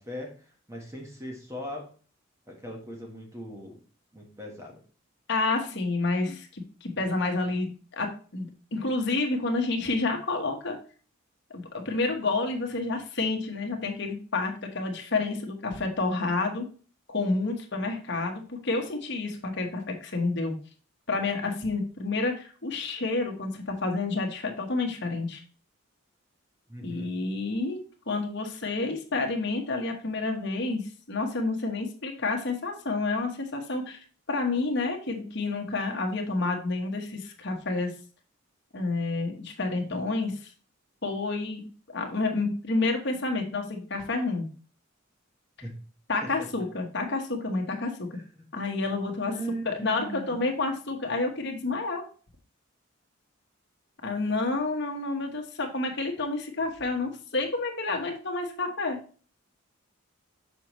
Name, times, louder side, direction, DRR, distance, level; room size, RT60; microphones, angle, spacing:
voice 1, 0.0-1.9 2.5-3.8 4.1-4.8 26.7-27.1 45.6-45.8 46.2-46.5 48.1-48.4 49.3-50.4, equal, 15° right, 1 dB, 1.3 m, -39 dB
voice 2, 5.3-10.8 11.5-16.6 17.1-20.5 21.1-25.4 26.8-27.8 28.1-30.8 31.1-34.0 34.3-37.9 38.7-40.4 41.0-41.6 41.9-44.5 46.1-48.1 48.5-49.3 49.6-52.0 54.0-59.0, left 3 dB, 55° left, 2 dB, 1.3 m, -29 dB
6.8 x 5.2 x 3.1 m, 0.40 s
head